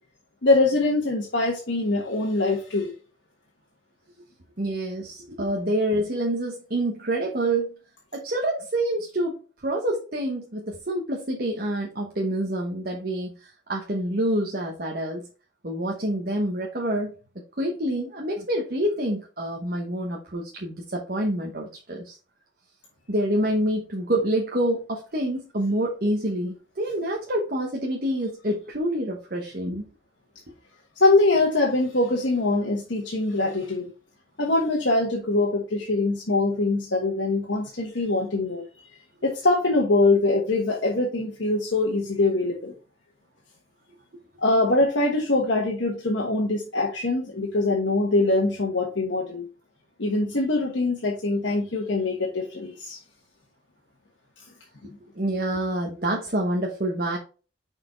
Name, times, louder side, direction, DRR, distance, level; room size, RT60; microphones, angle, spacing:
voice 1, 0.4-2.9 31.0-33.8 34.4-38.6 39.2-42.7 44.4-49.5 50.0-53.0, left 2 dB, 70° left, -1 dB, 1.2 m, -23 dB
voice 2, 4.6-7.7 8.1-15.3 15.6-17.1 17.6-22.2 23.1-29.8 55.1-57.2, right 1 dB, 50° right, 0 dB, 1.1 m, -27 dB
5.9 x 4.4 x 3.9 m, 0.35 s
head